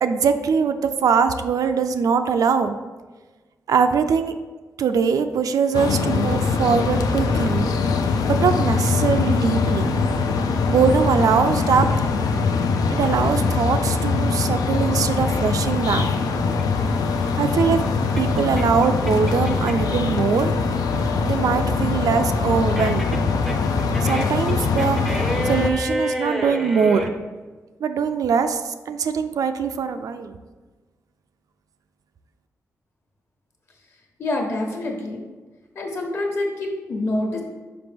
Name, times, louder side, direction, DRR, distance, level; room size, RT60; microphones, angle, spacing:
voice 1, 0.0-2.8 3.7-4.3 4.8-7.7 8.3-10.0 10.7-11.9 12.9-16.1 17.4-17.8 18.2-20.5 21.2-23.2 24.0-27.1 27.8-30.4, right 6 dB, 75° right, 8 dB, 0.4 m, -22 dB
sound 1, 5.7-25.7, left 4 dB, 85° left, 0.5 m, -22 dB
sound 2, 16.5-20.0 20.4-27.1, equal, ahead, 0.5 m, -30 dB
voice 2, 34.2-35.2 35.7-37.4, left 2 dB, 45° left, 1 dB, 1.1 m, -26 dB
5.9 x 5.0 x 3.4 m, 1.3 s
wide cardioid pair, 150°, 6 cm